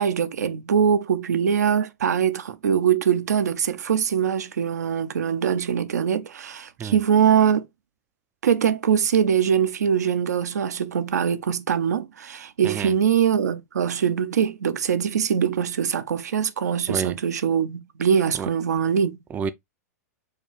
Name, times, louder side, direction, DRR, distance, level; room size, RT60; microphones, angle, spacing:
voice 1, 0.0-7.6 8.4-19.2, right 8 dB, 90° right, 0.5 m, -22 dB
voice 2, 6.8-7.0 12.6-12.9 16.9-17.1 18.4-18.5 19.3-19.5, right 7 dB, 20° right, 0.3 m, -29 dB
4.4 x 2.3 x 3.2 m
hypercardioid pair, 115°, 9 cm